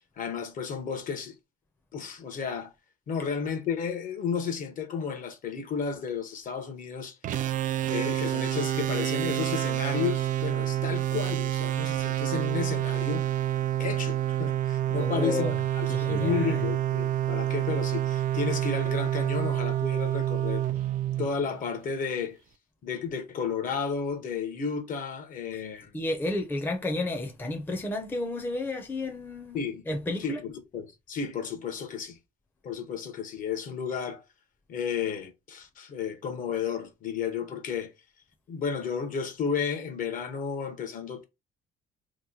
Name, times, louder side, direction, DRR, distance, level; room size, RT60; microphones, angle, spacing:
voice 1, 0.2-1.3 1.9-2.7 3.1-7.2 7.9-13.2 13.8-20.6 21.2-22.4 22.8-25.9 29.5-29.8 30.2-32.2 32.6-34.2 34.7-37.9 38.5-41.2, left 6 dB, 50° left, 0.9 m, -32 dB
sound 1, 7.2-21.8, right 12 dB, 50° right, 0.4 m, -28 dB
voice 2, 14.9-15.6 15.9-16.7 25.5-25.6 25.9-29.6 29.9-30.4, left 2 dB, 10° left, 0.6 m, -32 dB
3.0 x 2.1 x 3.8 m
cardioid pair, 110°, 17 cm